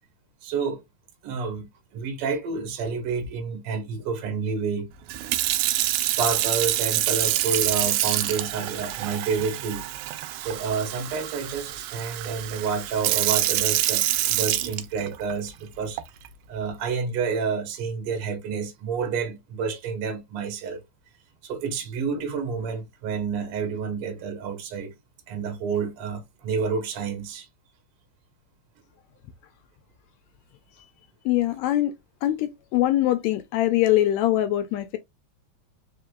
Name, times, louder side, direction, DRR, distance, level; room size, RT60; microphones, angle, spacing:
voice 1, 0.4-0.8 1.2-1.7 1.9-4.9 6.0-9.8 10.4-16.0 16.5-20.8 21.4-24.9 25.3-27.5, right 5 dB, 60° right, 1.8 m, -29 dB
Sink (filling or washing) / Fill (with liquid), 5.1-15.3 16.0-16.3, right 14 dB, 90° right, 2.1 m, -26 dB
voice 2, 31.2-31.9 32.2-35.0, left 14 dB, 80° left, 1.6 m, -23 dB
4.7 x 3.4 x 2.2 m
omnidirectional pair, 3.6 m